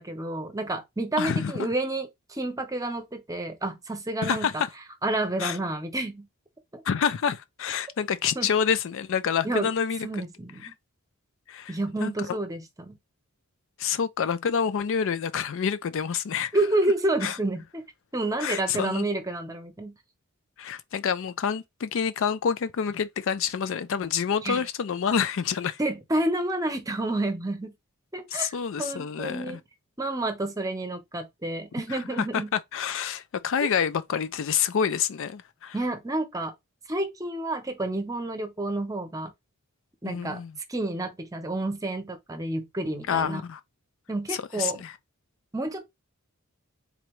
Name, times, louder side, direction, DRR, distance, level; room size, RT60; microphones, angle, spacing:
voice 1, 0.0-4.6 5.0-6.3 6.7-6.8 8.3-8.5 9.4-9.7 10.0-10.7 11.7-13.0 16.5-17.8 18.1-19.9 24.4-24.7 25.8-27.7 28.1-28.5 28.8-29.6 30.0-32.5 35.7-36.5 36.9-39.3 40.0-40.4 40.7-43.4 44.1-44.8 45.5-45.8, right 2 dB, 15° right, 0.7 m, -29 dB
voice 2, 1.2-1.7 4.2-4.7 5.4-5.6 6.8-10.2 10.6-10.7 11.5-12.4 13.8-16.5 17.2-17.4 18.4-19.1 20.6-25.8 28.3-29.6 31.9-35.8 40.0-40.5 43.1-43.6 44.3-44.9, left 7 dB, 60° left, 0.4 m, -28 dB
3.9 x 3.2 x 3.1 m
head